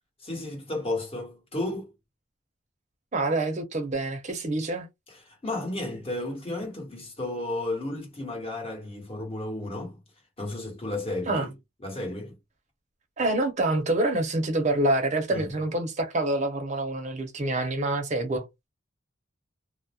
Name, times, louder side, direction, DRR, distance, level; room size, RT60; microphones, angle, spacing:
voice 1, 0.2-1.9 5.1-10.0 10.4-11.5 11.8-12.4 15.3-15.5, left 2 dB, 30° left, 1.1 m, -33 dB
voice 2, 3.1-4.9 11.3-11.5 13.2-18.5, right 2 dB, 35° right, 0.6 m, -26 dB
2.3 x 2.0 x 2.8 m
head